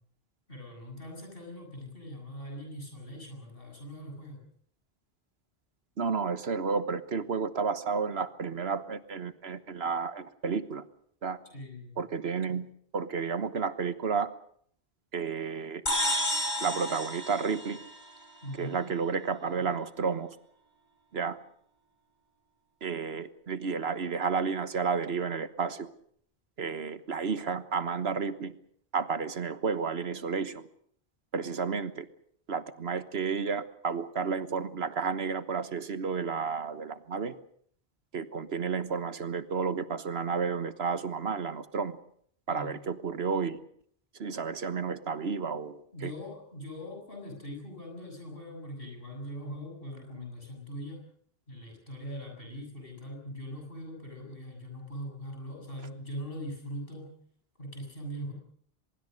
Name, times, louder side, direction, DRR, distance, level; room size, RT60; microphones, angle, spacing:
voice 1, 0.5-4.4 11.5-11.9 18.4-18.8 42.5-42.7 45.9-51.0 51.5-57.1 57.6-58.3, equal, 65° left, 1 dB, 7.8 m, -41 dB
voice 2, 6.0-10.9 11.2-11.4 12.0-12.7 12.9-14.3 15.1-15.8 16.3-17.8 18.6-20.4 21.1-21.4 22.8-25.9 26.6-28.5 28.9-30.6 31.3-32.1 32.5-37.3 38.1-42.0 42.5-43.6 44.2-46.1, right 5 dB, 80° right, 12 dB, 1.5 m, -31 dB
sound 1, 15.9-18.4, left 1 dB, 45° left, 4.7 m, -31 dB
24.5 x 22.0 x 6.6 m, 0.62 s
omnidirectional pair, 1.0 m